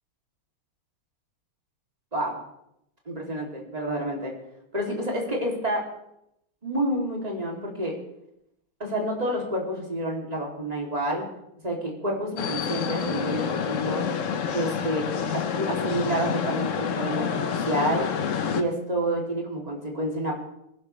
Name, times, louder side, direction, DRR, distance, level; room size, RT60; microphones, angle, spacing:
voice 1, 3.1-4.3 4.7-5.9 6.6-8.0 8.8-11.2 11.6-14.1 14.5-15.1 15.3-17.3 17.7-18.1 18.5-20.4, right 1 dB, 15° right, -1 dB, 2.9 m, -28 dB
sound 1, 12.4-18.6, left 7 dB, 55° left, 0.8 m, -28 dB
21.0 x 12.5 x 3.3 m, 0.79 s
omnidirectional pair, 2.4 m